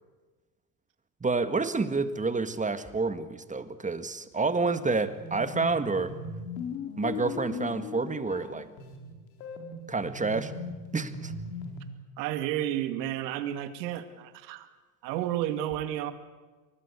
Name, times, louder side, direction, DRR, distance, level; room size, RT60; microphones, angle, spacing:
voice 1, 1.2-6.1 7.0-8.7 9.9-10.5 10.9-11.3, right 4 dB, 15° right, 11 dB, 1.8 m, -29 dB
sound 1, 5.0-11.9, left 4 dB, 80° left, 4.5 m, -39 dB
voice 2, 12.2-14.7 15.0-16.1, right 12 dB, 80° right, 10 dB, 2.4 m, -31 dB
24.0 x 19.5 x 8.4 m, 1.3 s
supercardioid pair, 95°, 50 cm